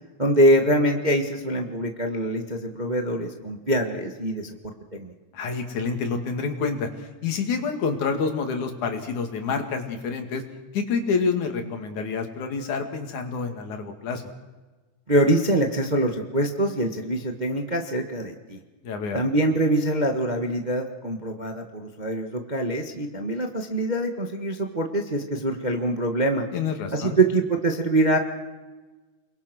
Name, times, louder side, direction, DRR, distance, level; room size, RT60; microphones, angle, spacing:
voice 1, 0.2-5.1 15.1-18.6 19.1-26.4 26.9-28.2, right 1 dB, 25° right, 4 dB, 1.1 m, -24 dB
voice 2, 5.3-10.4 10.7-14.2 18.8-19.2 26.5-27.2, left 5 dB, 80° left, 5 dB, 3.8 m, -28 dB
29.0 x 21.5 x 6.3 m, 1.2 s
omnidirectional pair, 3.4 m